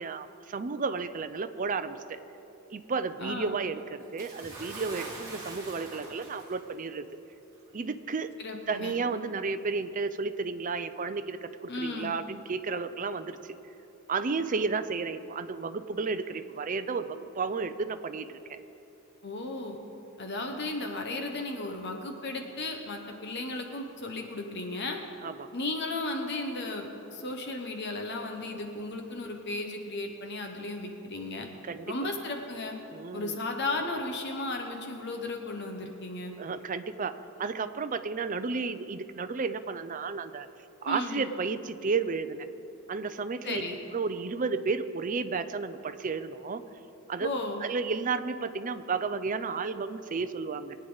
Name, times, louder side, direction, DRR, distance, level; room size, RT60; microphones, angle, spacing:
voice 1, 0.0-2.2 2.7-7.0 7.7-8.3 8.7-13.6 14.1-18.6 25.2-25.5 31.6-32.0 32.9-33.4 36.4-40.5 40.8-42.5 42.9-43.6 43.9-46.6 47.1-47.3 47.6-50.7, right 4 dB, 40° right, 10 dB, 0.5 m, -32 dB
voice 2, 3.2-3.6 8.4-9.0 11.7-12.1 19.2-19.8 20.2-25.0 25.5-31.5 31.9-32.8 33.1-36.3 40.8-41.2 43.4-43.8 47.2-47.6, left 2 dB, 50° left, 3 dB, 1.2 m, -35 dB
Bathtub (filling or washing) / Splash splatter, 4.2-6.8 7.7-7.8 8.8-8.9, right 2 dB, 15° right, 2.2 m, -43 dB
22.0 x 9.2 x 4.0 m, 3.0 s
head